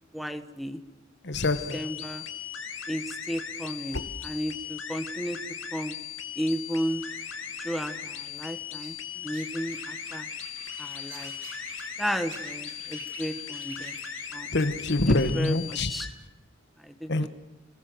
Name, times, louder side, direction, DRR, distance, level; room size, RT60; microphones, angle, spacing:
voice 1, 0.1-0.8 1.7-2.2 2.9-5.4 5.7-5.9 6.3-7.0 7.6-10.3 10.8-11.3 12.0-13.9 14.3-14.5 15.1-16.1 16.8-17.3, equal, ahead, 1.5 m, -33 dB
voice 2, 1.2-1.8 14.5-15.9 17.1-17.3, left 2 dB, 60° left, 1.5 m, -25 dB
sound 1, 1.3-16.1, left 9 dB, 85° left, 2.7 m, -38 dB
sound 2, 7.0-14.3, right 5 dB, 85° right, 4.5 m, -48 dB
29.5 x 21.0 x 8.0 m
head